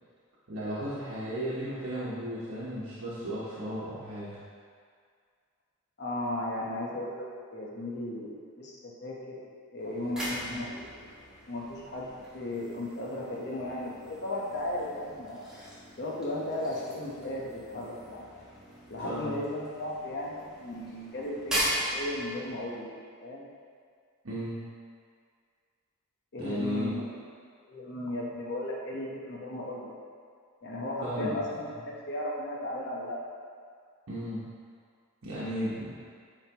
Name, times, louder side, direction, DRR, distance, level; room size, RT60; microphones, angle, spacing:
voice 1, 0.5-4.4 10.4-10.6 19.0-19.4 24.2-24.6 26.4-26.9 31.0-31.3 31.7-31.8 34.1-34.4 35.2-35.9, equal, 85° right, -10 dB, 1.1 m, -35 dB
voice 2, 6.0-7.2 7.5-9.4 9.7-10.9 11.5-15.4 16.0-18.2 18.9-22.9 23.2-23.5 26.3-27.0 27.7-29.9 30.6-33.2, left 1 dB, 55° left, -3 dB, 1.0 m, -35 dB
sound 1, 9.8-22.8, equal, 5° right, 1.5 m, -39 dB
8.9 x 4.1 x 3.0 m, 2.1 s
head